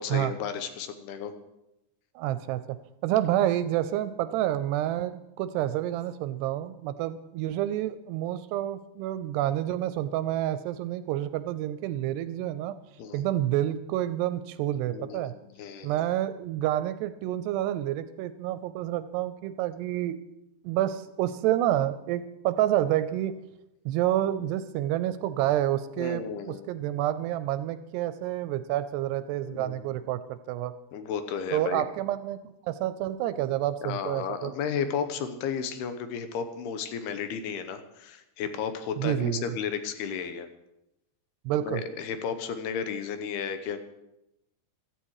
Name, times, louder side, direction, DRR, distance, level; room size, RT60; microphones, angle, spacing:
voice 1, 0.0-1.3 13.0-13.2 14.9-16.0 26.0-26.7 29.4-29.9 30.9-31.8 33.8-40.5 41.6-43.8, left 7 dB, 75° left, 9 dB, 2.8 m, -33 dB
voice 2, 2.2-2.8 3.0-12.7 13.1-15.3 15.8-20.2 20.6-23.4 23.9-30.7 31.5-34.5 39.0-39.4 41.5-41.8, right 13 dB, 80° right, 13 dB, 2.6 m, -28 dB
16.0 x 13.5 x 4.8 m, 0.90 s
omnidirectional pair, 5.0 m